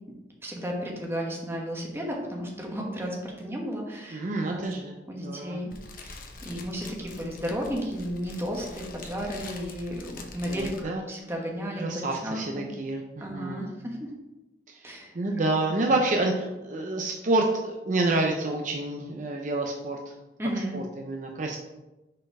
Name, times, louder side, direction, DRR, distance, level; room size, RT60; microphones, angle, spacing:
voice 1, 0.4-4.6 5.1-5.7 6.0-12.7 13.2-14.1 14.8-15.1 15.4-15.8 20.4-20.8, equal, 15° right, -1 dB, 1.2 m, -33 dB
voice 2, 4.1-4.9 5.2-5.6 10.5-11.1 11.8-13.7 14.7-20.0 20.7-21.6, right 2 dB, 45° right, 1 dB, 0.6 m, -28 dB
Fire, 5.7-10.8, left 3 dB, 50° left, 0.8 m, -44 dB
6.4 x 4.3 x 4.7 m, 1.0 s
head